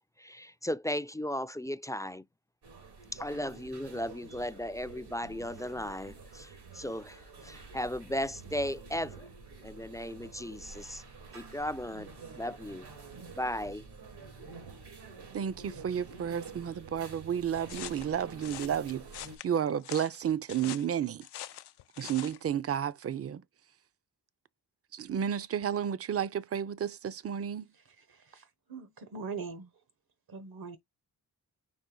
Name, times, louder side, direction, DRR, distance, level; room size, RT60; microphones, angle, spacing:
voice 1, 0.0-2.2 3.1-9.3 9.6-11.0 11.3-12.9 13.4-13.8, left 1 dB, 10° left, 0.3 m, -36 dB
sound 1, 2.6-19.4, right 4 dB, 85° right, 2.2 m, -49 dB
voice 2, 15.3-19.0 19.4-21.3 22.0-23.4 24.9-27.7, right 9 dB, 40° right, 0.5 m, -32 dB
sound 2, 17.7-22.4, left 13 dB, 85° left, 0.5 m, -44 dB
voice 3, 27.7-29.7 30.3-30.8, right 5 dB, 65° right, 1.1 m, -42 dB
5.3 x 2.5 x 3.8 m
cardioid pair, 65°, 39 cm